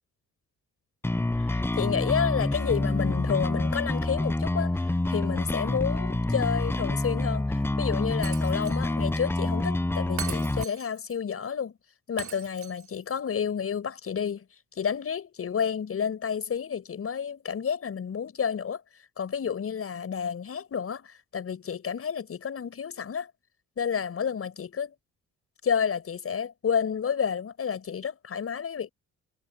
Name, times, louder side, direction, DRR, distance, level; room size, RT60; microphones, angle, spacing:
sound 1, 1.0-10.6, left 2 dB, 10° left, 0.7 m, -27 dB
voice 1, 1.4-11.8 12.1-14.4 14.7-18.8 19.2-23.3 23.8-24.9 25.6-28.9, left 7 dB, 50° left, 6.7 m, -30 dB
Shatter, 8.2-8.9 9.1-9.2 10.2-11.2 12.2-13.2, right 9 dB, 70° right, 4.1 m, -40 dB
cardioid pair, 90°, 30 cm